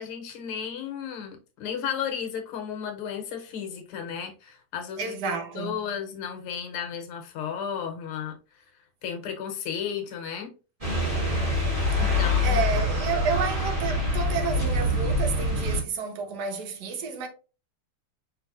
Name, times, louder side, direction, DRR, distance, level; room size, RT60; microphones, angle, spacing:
voice 1, 0.0-5.1 5.6-8.3 9.0-10.5 12.0-12.6, left 8 dB, 80° left, 1.8 m, -34 dB
voice 2, 5.0-5.9 12.4-17.3, right 5 dB, 60° right, 1.2 m, -30 dB
sound 1, 10.8-15.8, left 1 dB, 20° right, 1.5 m, -25 dB
5.2 x 3.3 x 2.5 m
omnidirectional pair, 2.4 m